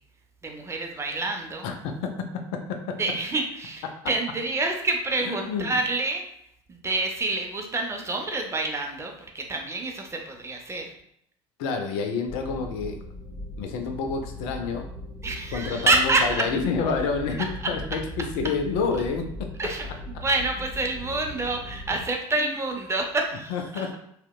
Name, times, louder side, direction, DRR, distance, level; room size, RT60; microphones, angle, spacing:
voice 1, 0.4-1.7 3.0-6.2 6.7-10.9 15.2-16.4 19.6-24.0, right 2 dB, 20° right, 2 dB, 0.5 m, -27 dB
voice 2, 1.6-3.0 3.9-4.0 5.3-5.8 11.6-13.0 13.6-14.9 15.5-19.3 20.1-20.2 22.4-22.5 23.5-24.0, left 5 dB, 60° left, 5 dB, 0.4 m, -29 dB
sound 1, 12.3-22.0, left 1 dB, 20° left, 1.0 m, -39 dB
2.8 x 2.1 x 2.2 m, 0.71 s
hypercardioid pair, 65°, 15 cm